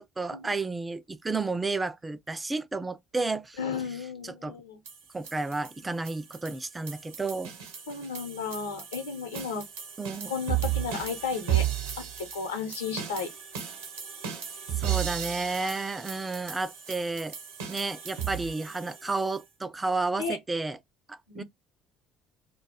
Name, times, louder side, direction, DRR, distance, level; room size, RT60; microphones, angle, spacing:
voice 1, 0.0-3.6 4.2-4.6 5.1-7.6 10.0-10.3 14.8-17.4 17.7-20.8 21.1-21.4, right 3 dB, 15° right, 0.3 m, -32 dB
voice 2, 3.6-4.8 7.9-9.6 10.3-11.7 12.0-12.1 12.3-13.3 15.6-15.7 20.2-20.4 21.3-21.4, left 5 dB, 75° left, 0.8 m, -33 dB
sound 1, 4.9-19.4, right 11 dB, 70° right, 0.8 m, -35 dB
2.3 x 2.2 x 3.1 m
figure-of-eight pair, 55°, 0 cm